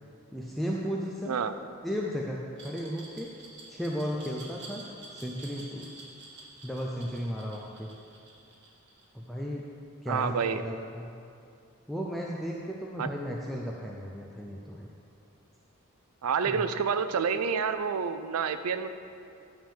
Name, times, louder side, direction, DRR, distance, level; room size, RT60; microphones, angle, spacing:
voice 1, 0.3-1.4 1.8-3.3 3.7-4.8 5.1-5.9 6.6-7.9 9.1-9.6 10.0-11.1 11.9-14.9 16.5-16.6, equal, ahead, -3 dB, 0.5 m, -34 dB
Glass, 2.6-9.4, right 3 dB, 50° right, 1.7 m, -48 dB
voice 2, 10.1-10.6 13.0-13.1 16.2-18.9, right 6 dB, 75° right, 10 dB, 0.4 m, -28 dB
10.0 x 3.7 x 7.1 m, 2.5 s
head